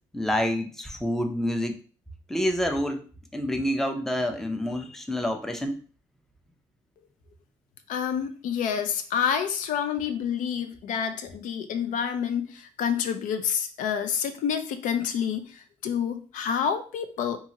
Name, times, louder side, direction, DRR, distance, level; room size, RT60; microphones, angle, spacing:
voice 1, 0.1-1.8 2.3-3.1 3.3-5.8, equal, 5° left, 5 dB, 0.4 m, -27 dB
voice 2, 7.9-17.4, left 8 dB, 70° left, 9 dB, 0.4 m, -28 dB
2.8 x 2.4 x 2.8 m, 0.39 s
supercardioid pair, 80°, 14 cm